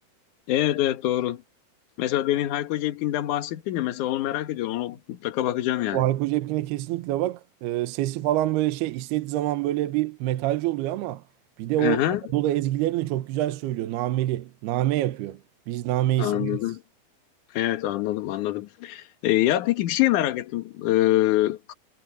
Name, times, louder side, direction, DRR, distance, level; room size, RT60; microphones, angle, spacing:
voice 1, 0.5-1.4 2.0-6.1 11.8-12.2 16.2-16.8 17.5-21.7, left 14 dB, 65° left, 2.1 m, -25 dB
voice 2, 5.9-11.2 11.6-15.4 15.7-16.6, right 14 dB, 75° right, 2.8 m, -26 dB
omnidirectional pair, 5.2 m